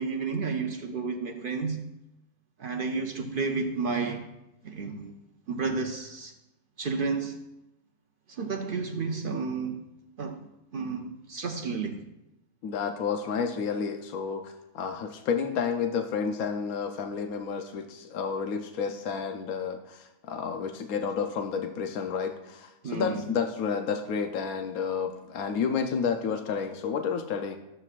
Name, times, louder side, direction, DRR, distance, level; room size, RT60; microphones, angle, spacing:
voice 1, 0.0-1.9 2.6-4.3 4.6-5.1 5.5-6.3 6.8-7.4 8.3-9.8 10.2-10.5 10.7-12.1 22.8-23.2, right 4 dB, 60° right, 0.5 m, -31 dB
voice 2, 12.6-27.6, left 6 dB, 85° left, 1.1 m, -30 dB
13.0 x 7.6 x 2.4 m
omnidirectional pair, 1.5 m